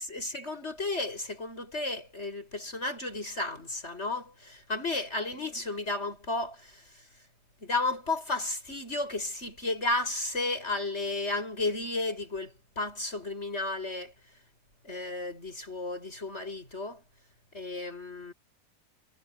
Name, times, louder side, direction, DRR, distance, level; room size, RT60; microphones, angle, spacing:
voice 1, 0.0-7.0 7.6-14.1 14.8-17.0 17.5-18.3, left 2 dB, 40° left, 8.4 m, -33 dB
omnidirectional pair, 1.7 m